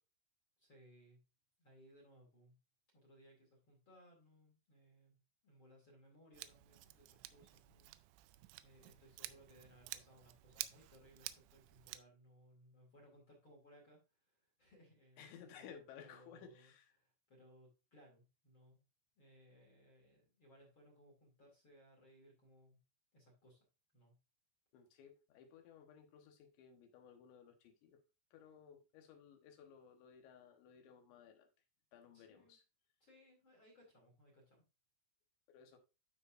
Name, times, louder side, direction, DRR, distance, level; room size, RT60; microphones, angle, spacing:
voice 1, 0.6-1.2 1.6-2.6 2.9-5.2 5.4-7.9 8.6-14.0 14.3-15.3 15.6-18.8 19.2-22.8 23.1-23.6 23.9-24.1 32.1-32.6 33.0-34.6, equal, 40° left, 1.9 m, -65 dB
Scissors, 6.3-12.0, right 16 dB, 85° right, 2.8 m, -51 dB
voice 2, 15.2-16.9 24.7-28.0 28.3-31.5 31.9-32.6 35.5-35.8, left 7 dB, 75° left, 3.3 m, -58 dB
12.5 x 4.7 x 2.5 m
omnidirectional pair, 5.5 m